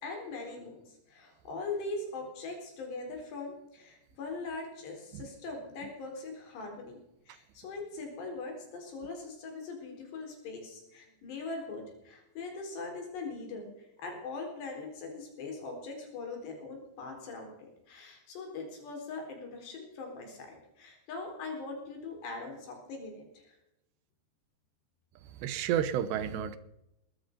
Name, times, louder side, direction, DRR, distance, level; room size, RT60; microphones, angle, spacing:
voice 1, 0.0-7.0 7.3-17.5 17.9-23.6, left 3 dB, 80° left, 2 dB, 6.2 m, -41 dB
voice 2, 25.4-26.6, right 9 dB, 85° right, 13 dB, 3.2 m, -31 dB
21.0 x 13.0 x 5.3 m, 0.86 s
omnidirectional pair, 4.8 m